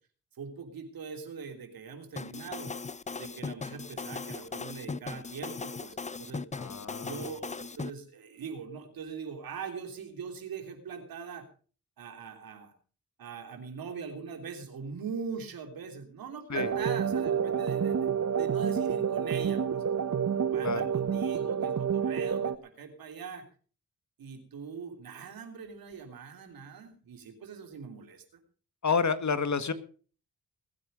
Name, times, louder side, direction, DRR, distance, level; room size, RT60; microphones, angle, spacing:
voice 1, 0.3-2.7 3.1-6.5 7.0-11.5 12.0-12.7 13.2-18.1 18.3-19.6 20.5-23.4 24.2-28.4, right 6 dB, 80° right, 5 dB, 3.3 m, -41 dB
sound 1, 2.2-7.9, left 4 dB, 20° left, 0.6 m, -38 dB
voice 2, 6.5-7.2 16.5-16.7 20.6-20.8 28.8-29.7, left 5 dB, 55° left, 12 dB, 1.9 m, -29 dB
sound 2, 16.5-22.6, right 7 dB, 55° right, 1.3 m, -29 dB
20.5 x 9.6 x 5.2 m, 0.40 s
supercardioid pair, 40°, 35 cm